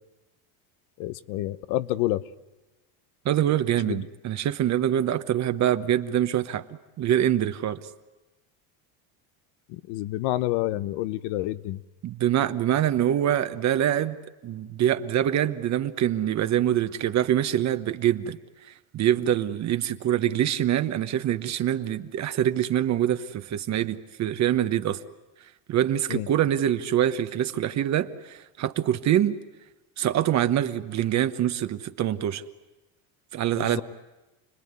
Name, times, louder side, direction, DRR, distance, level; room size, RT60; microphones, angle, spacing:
voice 1, 1.0-2.2 3.9-4.0 9.7-11.8 26.1-26.3 33.6-33.8, left 16 dB, 65° left, 15 dB, 1.0 m, -28 dB
voice 2, 3.2-6.6 7.0-7.8 12.0-14.2 14.4-18.4 18.9-25.0 25.7-29.4 30.0-32.4 33.3-33.8, right 11 dB, 40° right, 10 dB, 1.1 m, -24 dB
29.5 x 20.5 x 9.6 m, 1.1 s
cardioid pair, 140°, 42 cm